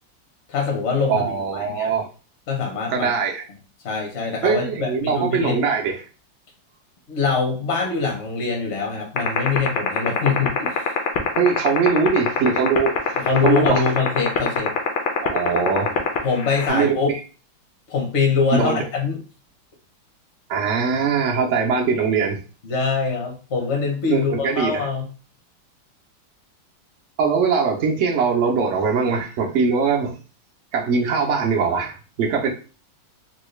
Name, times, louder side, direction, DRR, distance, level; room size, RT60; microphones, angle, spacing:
voice 1, 0.5-1.9 2.5-3.1 3.8-5.6 7.1-10.9 13.2-14.8 16.2-17.2 17.9-19.2 22.6-25.1, left 5 dB, 55° left, 0.8 m, -23 dB
voice 2, 1.1-2.1 2.9-3.4 4.4-6.0 11.4-13.9 15.2-16.0 16.7-16.9 18.5-18.8 20.5-22.4 24.1-24.9 27.2-30.1 30.7-32.5, right 5 dB, 90° right, 0.6 m, -21 dB
sound 1, 9.2-16.7, left 12 dB, 80° left, 1.4 m, -20 dB
3.9 x 2.2 x 3.1 m
omnidirectional pair, 2.1 m